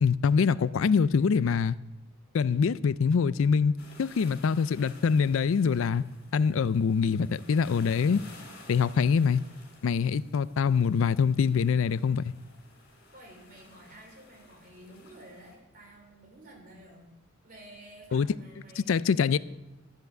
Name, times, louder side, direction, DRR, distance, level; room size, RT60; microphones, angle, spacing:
voice 1, 0.0-1.8 2.3-6.0 6.3-8.2 8.7-9.4 9.8-12.3 18.1-18.3 18.9-19.4, left 6 dB, 75° left, 0.4 m, -24 dB
sound 1, 3.8-15.6, left 2 dB, 55° left, 3.7 m, -54 dB
voice 2, 13.1-17.1 17.4-18.9, right 1 dB, 45° right, 3.7 m, -51 dB
12.0 x 8.1 x 7.8 m
head